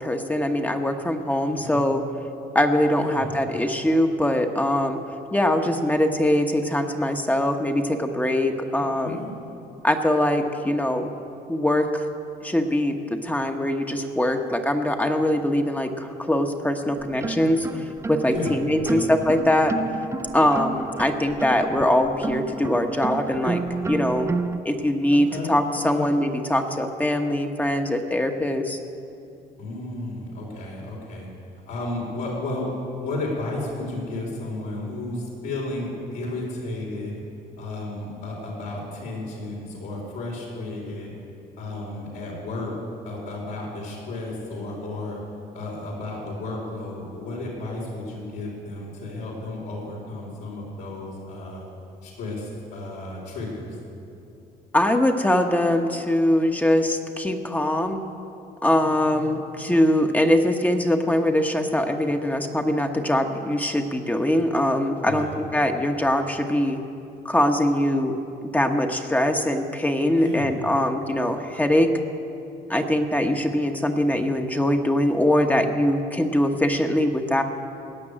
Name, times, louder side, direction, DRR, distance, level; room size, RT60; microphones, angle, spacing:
voice 1, 0.0-2.0 2.5-5.0 5.3-9.2 9.8-11.1 11.5-12.1 12.4-17.7 18.1-19.7 20.3-24.3 24.6-28.8 54.7-58.0 58.6-66.8 67.2-68.1 68.4-71.9 72.7-77.4, left 1 dB, 10° left, 5 dB, 1.0 m, -22 dB
voice 2, 2.9-3.3 8.7-9.3 18.3-18.6 18.8-19.1 25.1-25.5 25.9-26.1 29.6-31.3 31.7-32.7 33.0-37.1 37.6-41.1 41.6-42.7 43.0-45.2 45.5-51.6 52.0-53.7 58.8-59.3 65.0-65.3 70.2-70.5, left 2 dB, 85° left, -5 dB, 4.7 m, -33 dB
sound 1, 17.0-24.6, right 3 dB, 15° right, 0.6 m, -31 dB
17.5 x 6.8 x 10.0 m, 2.7 s
cardioid pair, 110°, 17 cm